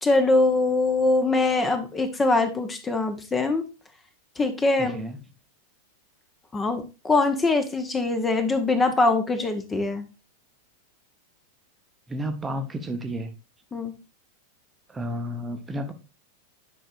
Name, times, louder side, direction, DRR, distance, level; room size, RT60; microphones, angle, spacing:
voice 1, 0.0-3.6 4.4-5.1 6.5-10.0 13.7-13.9, left 2 dB, 15° left, 8 dB, 0.9 m, -23 dB
voice 2, 4.8-5.2 12.1-13.3 14.9-15.9, equal, 15° right, 6 dB, 0.9 m, -32 dB
10.0 x 5.5 x 2.5 m, 0.31 s
figure-of-eight pair, 90°, 0 cm